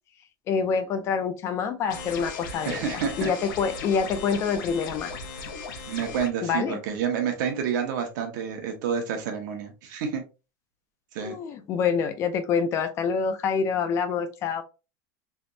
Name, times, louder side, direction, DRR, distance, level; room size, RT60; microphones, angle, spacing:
voice 1, 0.5-2.8 3.2-5.2 6.4-6.8 11.2-14.6, left 6 dB, 25° left, 9 dB, 0.3 m, -26 dB
sound 1, 1.9-6.3, left 4 dB, 75° left, 0.9 m, -37 dB
voice 2, 2.7-3.3 5.9-10.2 11.1-11.3, right 7 dB, 65° right, 4 dB, 1.1 m, -29 dB
3.4 x 2.9 x 2.6 m, 0.30 s
supercardioid pair, 170°, 11 cm